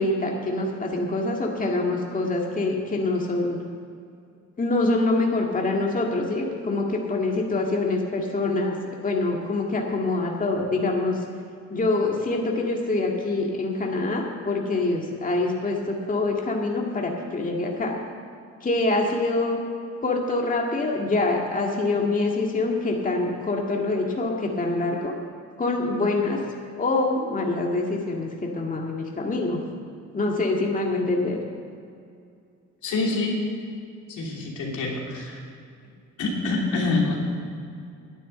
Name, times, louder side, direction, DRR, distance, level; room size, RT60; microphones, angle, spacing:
voice 1, 0.0-3.6 4.6-8.8 9.0-11.2 11.7-17.9 18.6-19.6 20.0-25.1 25.6-26.4 26.8-29.6 30.1-31.4, left 2 dB, 25° left, -1 dB, 1.9 m, -25 dB
voice 2, 32.8-33.4 34.1-35.4 36.2-37.1, left 3 dB, 80° left, -2 dB, 3.0 m, -26 dB
11.0 x 9.7 x 7.6 m, 2.4 s
cardioid pair, 90°, 30 cm